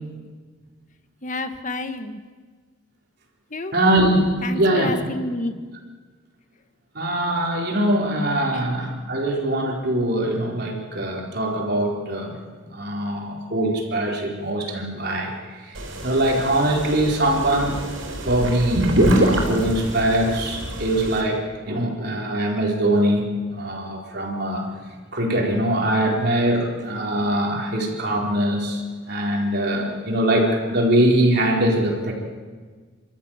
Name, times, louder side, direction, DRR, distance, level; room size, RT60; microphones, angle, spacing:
voice 1, 1.2-2.2 3.5-3.7 4.4-5.5 8.5-8.6, left 2 dB, 40° left, 8 dB, 1.4 m, -29 dB
voice 2, 3.7-4.9 6.9-12.3 12.7-15.3 15.6-17.7 18.2-23.2 23.5-24.7 25.1-28.8 29.1-32.1, right 1 dB, 55° right, -1 dB, 4.3 m, -22 dB
sound 1, 15.8-21.2, right 1 dB, 80° right, 4.8 m, -24 dB
29.0 x 13.5 x 9.0 m, 1.5 s
head